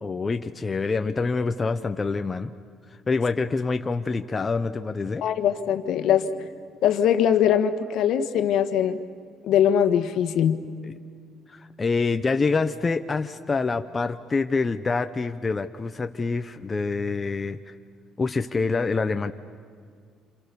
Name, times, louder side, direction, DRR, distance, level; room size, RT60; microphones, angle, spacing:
voice 1, 0.0-2.5 3.1-5.2 10.8-10.9 11.5-17.7 18.2-19.3, left 4 dB, 20° left, 7 dB, 0.7 m, -26 dB
voice 2, 5.2-6.2 6.8-9.0 9.4-10.6, left 9 dB, 65° left, 8 dB, 1.5 m, -21 dB
28.0 x 28.0 x 6.9 m, 2.1 s
cardioid pair, 145°, 0 cm